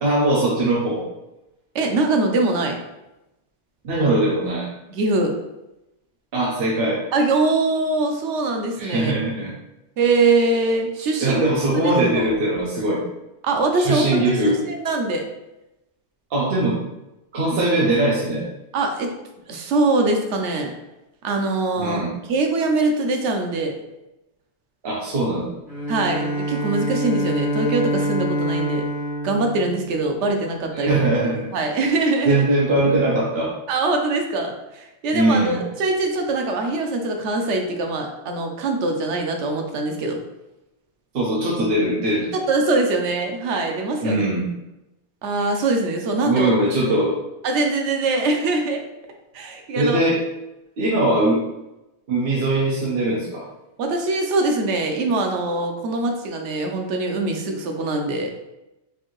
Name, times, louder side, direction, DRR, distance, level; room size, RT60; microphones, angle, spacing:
voice 1, 0.0-1.0 3.8-4.7 6.3-7.0 8.8-9.6 11.2-13.0 13.8-14.6 16.3-16.8 17.3-18.5 21.8-22.1 24.8-25.5 30.7-31.5 32.3-33.5 35.1-35.6 41.1-42.3 44.0-44.5 46.2-47.1 49.8-50.2 50.8-51.4 52.1-53.4, right 1 dB, 60° right, -5 dB, 0.9 m, -21 dB
voice 2, 1.7-2.8 4.9-5.3 7.1-9.1 10.0-11.4 11.7-12.3 13.4-15.3 18.7-19.1 19.5-20.7 21.2-22.0 22.3-23.7 25.9-28.8 29.2-31.0 31.5-32.4 33.7-40.2 42.3-44.2 45.2-46.5 47.4-48.8 49.3-50.0 53.8-58.3, right 2 dB, 85° right, 3 dB, 0.9 m, -22 dB
Bowed string instrument, 25.7-30.5, equal, 5° right, 1.3 m, -26 dB
4.4 x 2.6 x 2.9 m, 0.95 s
omnidirectional pair, 1.2 m